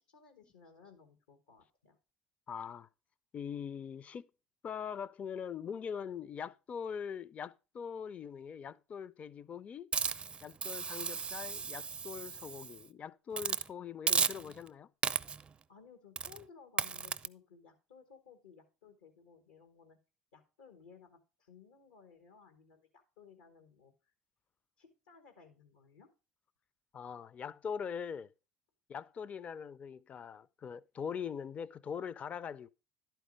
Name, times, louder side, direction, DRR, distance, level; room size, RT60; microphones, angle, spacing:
voice 1, 0.0-2.0 15.7-20.0 20.3-24.1 24.8-26.1, left 6 dB, 90° left, 1.3 m, -59 dB
voice 2, 2.5-2.9 3.3-4.3 4.6-9.9 10.4-14.9 26.9-28.3 28.9-32.7, left 7 dB, 40° left, 0.4 m, -42 dB
Hiss, 9.9-12.8 13.3-13.7 14.1-14.7 15.0-15.5 16.2-16.4 16.8-17.3, right 6 dB, 30° right, 0.4 m, -34 dB
11.0 x 4.6 x 5.1 m
hypercardioid pair, 75°, 4 cm